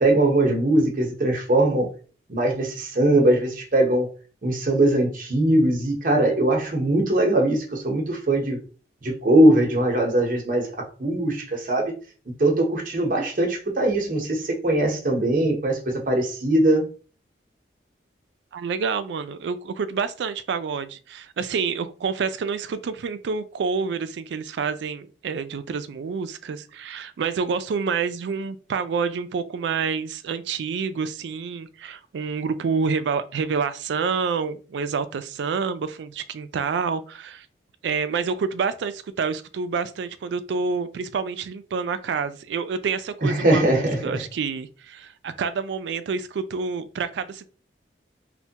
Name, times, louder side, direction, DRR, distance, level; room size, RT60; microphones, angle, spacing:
voice 1, 0.0-1.9 2.3-4.1 4.4-8.6 9.0-11.9 12.4-16.9 43.2-44.2, right 1 dB, 45° right, 0.8 m, -21 dB
voice 2, 18.5-37.5 37.8-47.5, right 5 dB, 75° right, 0.3 m, -28 dB
3.2 x 2.2 x 2.7 m
head